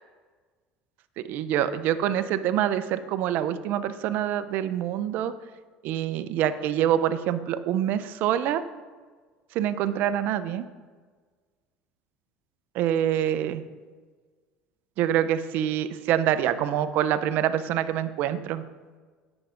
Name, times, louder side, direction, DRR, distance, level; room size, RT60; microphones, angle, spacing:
voice 1, 1.3-5.3 5.8-8.6 9.5-10.6 12.7-13.6 15.0-18.6, right 10 dB, 65° right, 12 dB, 0.7 m, -26 dB
9.9 x 7.1 x 5.1 m, 1.5 s
supercardioid pair, 105°, 3 cm